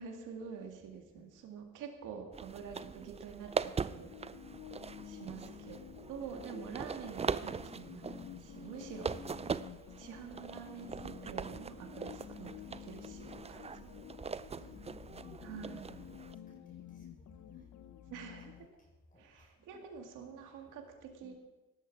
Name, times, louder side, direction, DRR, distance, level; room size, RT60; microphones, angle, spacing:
voice 1, 0.0-4.1 5.0-5.8 6.1-9.1 10.0-13.6 15.4-15.9 18.1-18.7 19.2-21.3, right 6 dB, 90° right, 3 dB, 2.3 m, -47 dB
sound 1, 2.3-16.3, right 5 dB, 20° right, 0.5 m, -42 dB
voice 2, 2.5-2.9 5.1-5.6 14.2-17.7 18.6-19.8 20.4-20.6 21.2-21.3, left 1 dB, 25° left, -2 dB, 4.6 m, -62 dB
sound 2, 3.9-18.7, left 11 dB, 70° left, 0.9 m, -51 dB
17.5 x 13.0 x 4.7 m, 1.1 s
cardioid pair, 90°, 30 cm